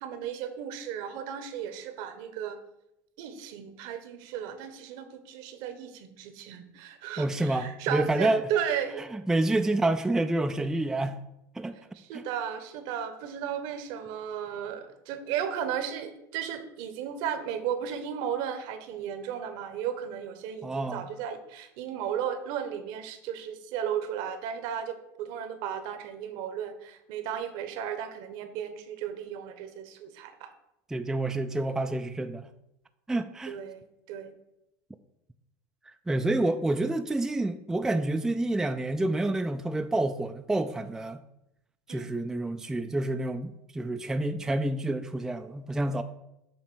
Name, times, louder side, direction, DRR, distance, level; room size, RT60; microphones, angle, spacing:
voice 1, 0.0-2.6 3.2-9.1 11.9-30.5 33.5-34.3 38.4-38.5 41.9-42.2, right 9 dB, 65° right, 9 dB, 0.9 m, -35 dB
voice 2, 7.2-8.4 9.0-11.2 11.6-11.8 12.1-12.2 20.6-21.1 30.9-32.5 33.1-33.6 36.1-41.2 41.9-46.0, right 2 dB, 5° right, 8 dB, 0.3 m, -28 dB
7.1 x 3.0 x 6.0 m, 0.85 s
supercardioid pair, 110°, 9 cm